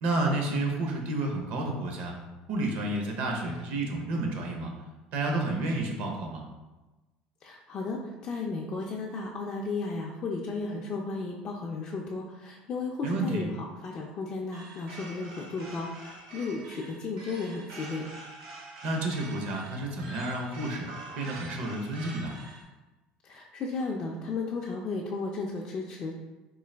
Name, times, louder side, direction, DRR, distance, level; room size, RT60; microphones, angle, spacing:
voice 1, 0.0-2.2 2.5-4.7 5.1-6.4 13.0-13.4 18.8-20.9 21.2-22.4, right 2 dB, 55° right, 1 dB, 0.7 m, -30 dB
voice 2, 7.4-18.0 23.2-26.2, left 3 dB, 30° left, -2 dB, 0.3 m, -34 dB
sound 1, 14.5-22.6, right 2 dB, 80° right, 1.0 m, -45 dB
3.8 x 2.6 x 3.2 m, 1.1 s
cardioid pair, 170°, 3 cm